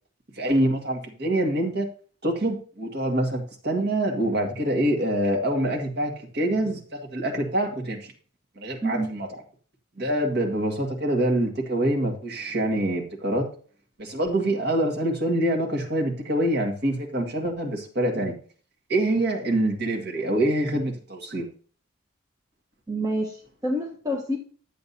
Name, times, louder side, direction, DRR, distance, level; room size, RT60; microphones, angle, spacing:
voice 1, 0.3-1.9 2.2-6.8 7.1-8.1 8.6-9.3 10.0-13.5 14.0-18.3 18.9-21.5, right 1 dB, 55° right, 1 dB, 1.9 m, -25 dB
voice 2, 22.9-24.4, equal, 15° right, 0 dB, 1.1 m, -28 dB
11.0 x 7.7 x 2.8 m, 0.42 s
head